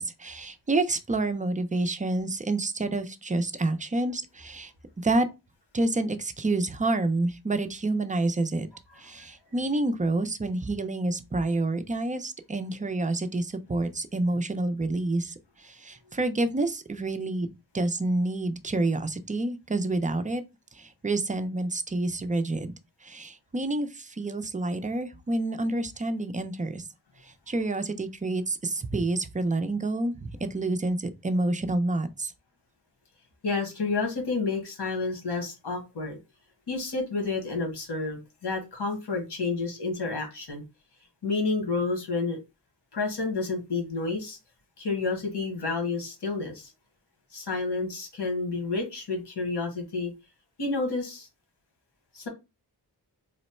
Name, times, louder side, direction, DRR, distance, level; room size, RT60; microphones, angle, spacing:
voice 1, 0.0-4.7 5.0-5.3 5.7-8.7 9.0-17.5 17.7-20.4 20.7-22.7 23.0-26.8 27.2-32.3, right 2 dB, 20° right, 0.4 m, -28 dB
voice 2, 33.4-36.2 36.7-40.6 41.2-42.4 42.9-44.4 44.8-46.7 47.3-50.1 50.6-51.3 52.1-52.3, left 3 dB, 85° left, 1.3 m, -30 dB
3.0 x 2.1 x 4.1 m
wide cardioid pair, 95°, 40 cm